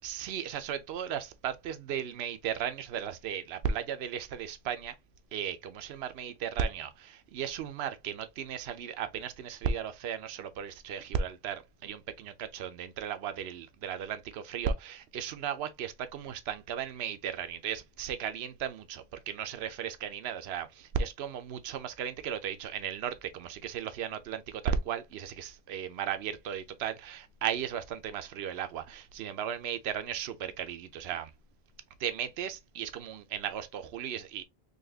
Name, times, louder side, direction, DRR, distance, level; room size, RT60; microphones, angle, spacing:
voice 1, 0.0-4.9 5.3-31.3 32.0-34.4, right 8 dB, 80° right, 0.9 m, -35 dB
4.0 x 2.9 x 2.7 m
omnidirectional pair, 1.0 m